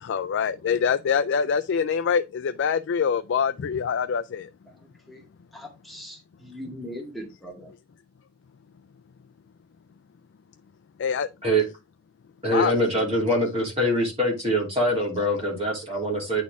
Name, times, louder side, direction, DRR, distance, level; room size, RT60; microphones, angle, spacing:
voice 1, 0.1-4.4 11.0-11.3 12.5-12.7, left 6 dB, 55° left, 0.3 m, -24 dB
voice 2, 4.7-5.2 5.5-7.7, equal, ahead, 1.9 m, -40 dB
voice 3, 12.4-16.4, equal, 25° right, 2.9 m, -24 dB
9.6 x 4.2 x 3.5 m
head